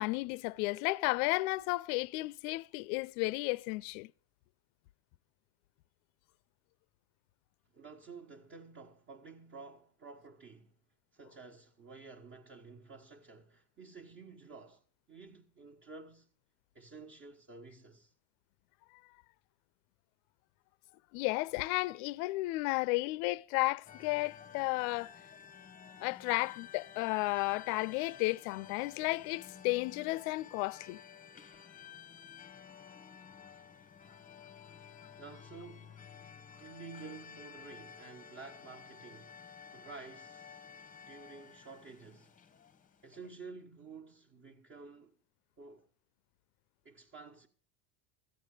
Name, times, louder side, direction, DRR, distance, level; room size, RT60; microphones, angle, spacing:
voice 1, 0.0-4.1 21.1-25.2 26.0-31.0, left 23 dB, 70° left, 0.5 m, -33 dB
voice 2, 7.7-10.7 11.1-16.3 16.7-18.1 35.1-36.0 36.6-39.4 39.7-40.6 41.1-42.3 43.0-45.1 45.6-45.9 46.8-47.5, right 4 dB, 30° right, 1.3 m, -51 dB
sound 1, 23.9-43.3, left 7 dB, 20° left, 0.8 m, -53 dB
14.5 x 8.3 x 6.5 m
supercardioid pair, 115°, 44 cm